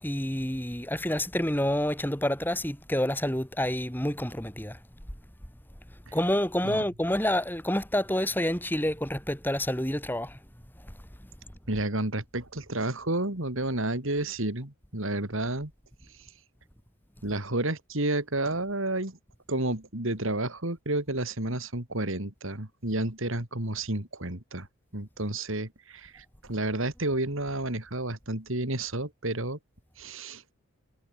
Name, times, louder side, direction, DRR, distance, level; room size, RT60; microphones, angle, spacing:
voice 1, 0.0-4.8 6.1-10.4, left 1 dB, 10° left, 3.7 m, -28 dB
voice 2, 11.7-15.7 17.2-19.2 19.5-24.7 24.9-29.6 30.0-30.4, right 2 dB, 60° right, 3.1 m, -31 dB
head